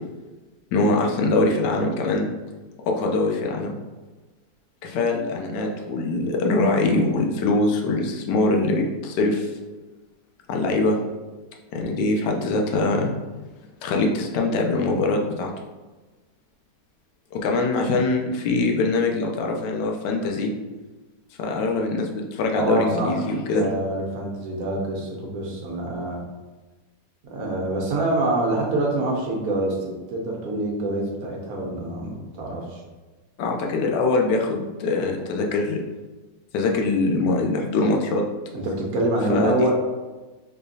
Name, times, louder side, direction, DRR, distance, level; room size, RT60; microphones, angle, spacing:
voice 1, 0.7-2.3 2.9-3.8 4.8-9.5 10.5-11.0 11.7-13.2 13.8-15.5 17.3-20.5 21.4-23.7 33.4-35.8 36.5-38.2 39.3-39.7, left 2 dB, 80° left, 1 dB, 1.2 m, -23 dB
voice 2, 22.5-23.1 23.4-26.2 27.2-32.8 38.5-39.7, right 2 dB, 65° right, -1 dB, 1.2 m, -26 dB
3.6 x 3.3 x 2.6 m, 1.2 s
omnidirectional pair, 1.8 m